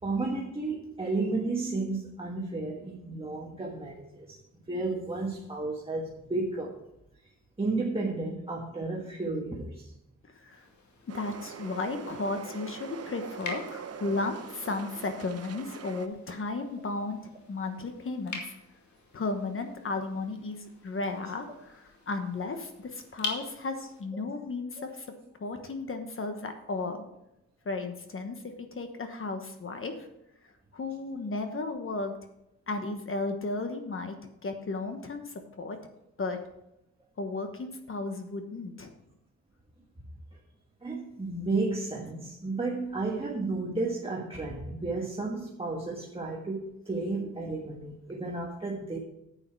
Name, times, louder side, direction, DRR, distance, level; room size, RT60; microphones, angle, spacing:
voice 1, 0.0-4.4 4.7-6.8 7.6-9.9 40.8-49.0, right 3 dB, 20° right, -3 dB, 1.5 m, -32 dB
voice 2, 10.3-10.6 11.1-17.2 17.5-18.5 19.1-25.1 25.4-27.0 27.6-30.1 30.7-32.2 32.7-35.8 36.2-36.4 37.2-38.9, left 3 dB, 45° left, 6 dB, 1.2 m, -34 dB
sound 1, 10.5-24.0, left 4 dB, 70° left, 2.2 m, -45 dB
sound 2, 11.1-16.1, right 7 dB, 55° right, 0.8 m, -43 dB
9.5 x 8.8 x 4.6 m, 0.82 s
wide cardioid pair, 115°, 30 cm